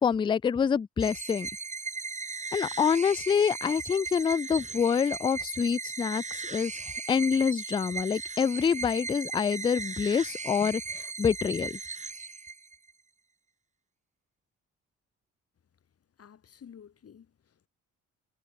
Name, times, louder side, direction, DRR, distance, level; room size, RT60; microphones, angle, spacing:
voice 1, 0.0-1.5 2.5-6.7 7.1-11.8, left 6 dB, 15° left, 0.3 m, -26 dB
sound 1, 1.0-12.9, right 4 dB, 25° right, 1.5 m, -37 dB
voice 2, 15.8-17.7, left 8 dB, 50° left, 4.6 m, -53 dB
cardioid pair, 90°, 30 cm